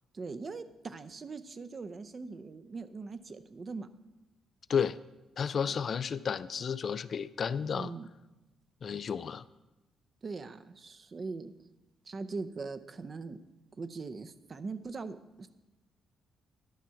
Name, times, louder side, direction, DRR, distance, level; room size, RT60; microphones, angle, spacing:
voice 1, 0.1-3.9 5.7-5.9 7.7-8.1 10.2-11.5 12.1-13.4 13.8-15.6, right 4 dB, 40° right, 11 dB, 0.6 m, -41 dB
voice 2, 5.4-7.9 8.8-9.4, left 7 dB, 50° left, 15 dB, 0.4 m, -32 dB
11.5 x 6.0 x 5.8 m, 1.0 s
cardioid pair, 90°, 0 cm